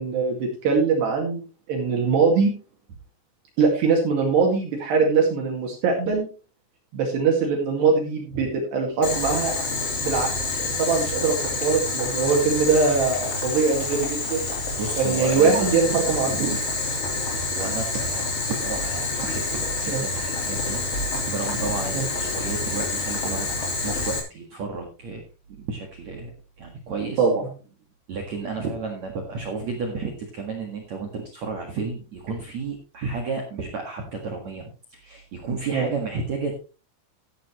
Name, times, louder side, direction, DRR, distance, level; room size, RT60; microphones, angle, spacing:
voice 1, 0.0-1.4 1.7-2.5 3.6-6.3 6.9-9.5 10.0-10.3 10.6-14.5 15.0-16.3 19.9-20.0 21.9-22.1 27.2-27.3 35.7-35.9, right 4 dB, 70° right, 0 dB, 4.2 m, -22 dB
Boiling, 9.0-24.2, left 3 dB, 35° left, 3.9 m, -27 dB
voice 2, 14.8-16.6 17.5-25.2 25.6-26.3 26.6-27.2 28.1-36.6, right 4 dB, 50° right, 1 dB, 2.4 m, -32 dB
14.0 x 10.5 x 3.1 m, 0.34 s
omnidirectional pair, 5.1 m